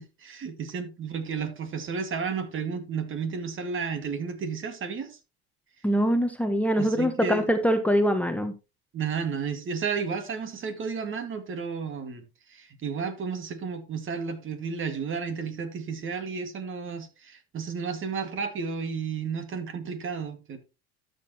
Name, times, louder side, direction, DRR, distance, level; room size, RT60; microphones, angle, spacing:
voice 1, 0.0-5.2 6.8-7.4 8.9-12.2 12.5-20.6, right 5 dB, 40° right, 2.2 m, -32 dB
voice 2, 5.8-8.5, equal, 5° left, 1.2 m, -23 dB
12.5 x 6.8 x 3.0 m
supercardioid pair, 90°, 31 cm